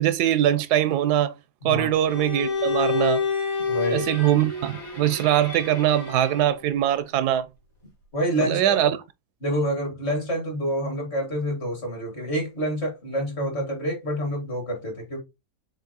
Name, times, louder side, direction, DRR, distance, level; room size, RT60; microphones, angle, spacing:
voice 1, 0.0-1.3 1.6-3.2 3.9-7.5 8.4-8.9, right 12 dB, 85° right, 1.1 m, -22 dB
Bowed string instrument, 2.1-6.6, left 5 dB, 60° left, 2.4 m, -29 dB
voice 2, 3.7-4.1 8.1-8.9 9.4-15.2, equal, 45° left, 2.0 m, -27 dB
7.0 x 2.7 x 2.8 m
omnidirectional pair, 1.7 m